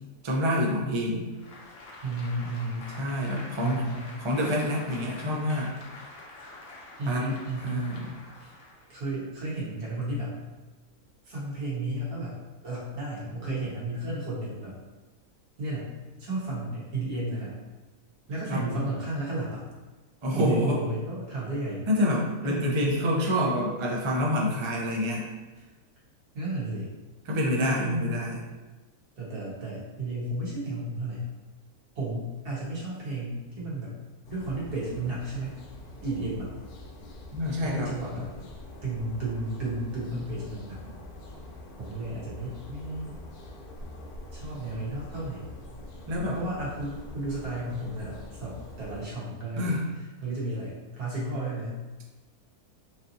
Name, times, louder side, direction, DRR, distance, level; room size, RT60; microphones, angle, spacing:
voice 1, 0.2-1.3 3.0-3.9 4.2-5.8 7.1-8.1 18.5-18.6 20.2-20.8 21.9-25.3 27.3-28.4 37.3-37.9 46.1-46.4 49.6-49.9, left 1 dB, 50° right, -2 dB, 0.3 m, -27 dB
Applause, 1.3-9.0, left 2 dB, 55° left, 0.7 m, -46 dB
voice 2, 2.0-2.9 3.6-4.0 7.0-7.8 8.4-8.5 8.9-10.3 11.2-14.7 15.6-15.9 16.2-17.6 18.3-19.7 20.3-21.9 22.4-22.7 26.3-26.9 27.6-28.1 29.2-31.3 31.9-34.0 34.3-35.6 36.0-36.5 37.6-38.3 38.8-40.8 41.8-43.2 44.3-45.6 46.3-49.8 50.2-51.8, right 2 dB, 85° right, -7 dB, 1.8 m, -33 dB
sound 1, 34.3-49.1, left 1 dB, 75° left, 1.2 m, -44 dB
5.2 x 2.8 x 2.6 m, 1.2 s
omnidirectional pair, 1.6 m